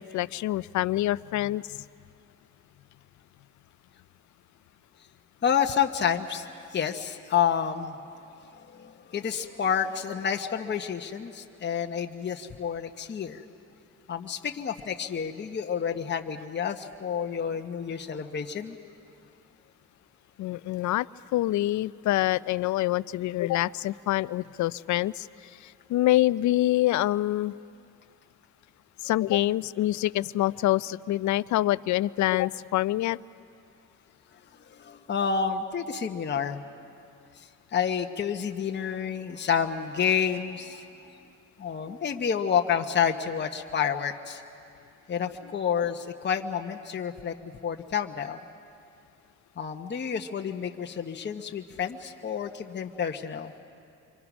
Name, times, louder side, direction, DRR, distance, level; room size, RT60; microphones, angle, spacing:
voice 1, 0.0-1.8 20.4-21.1 21.3-25.3 25.6-27.5 29.0-33.2, left 15 dB, 70° left, 18 dB, 0.5 m, -26 dB
voice 2, 5.4-8.0 8.6-13.4 14.1-18.8 34.7-36.6 37.4-40.9 41.6-44.4 45.1-48.4 49.6-53.5, left 7 dB, 35° left, 4 dB, 1.0 m, -29 dB
28.0 x 24.5 x 6.1 m, 2.5 s
cardioid pair, 90°, 30 cm